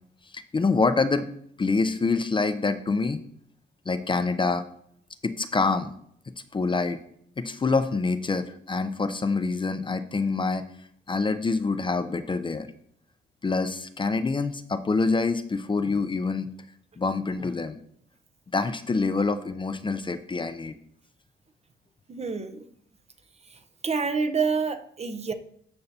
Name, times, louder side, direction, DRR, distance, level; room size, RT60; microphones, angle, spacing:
voice 1, 0.3-1.3 1.6-3.2 3.9-4.7 5.2-5.9 6.5-7.0 7.4-10.7 11.1-12.7 13.4-16.5 17.0-17.8 18.5-20.7, left 4 dB, 25° left, 10 dB, 0.6 m, -26 dB
voice 2, 22.1-22.7 23.8-25.3, right 5 dB, 30° right, 9 dB, 0.8 m, -27 dB
13.5 x 5.6 x 2.8 m, 0.66 s
cardioid pair, 90°, 20 cm